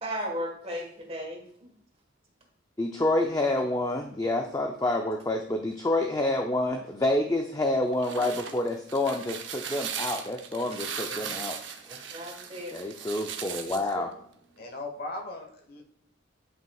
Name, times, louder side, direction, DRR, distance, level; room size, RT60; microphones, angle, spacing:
voice 1, 0.0-1.4 9.7-9.8 11.1-11.4 11.9-12.7, equal, 30° right, 2 dB, 1.4 m, -36 dB
voice 2, 2.8-11.6 12.7-14.1, left 1 dB, 15° left, 3 dB, 0.5 m, -28 dB
sound 1, 7.8-13.9, right 7 dB, 60° right, 0.8 m, -38 dB
voice 3, 14.6-15.9, left 2 dB, 45° left, 3 dB, 1.2 m, -38 dB
11.0 x 5.6 x 2.3 m, 0.67 s
head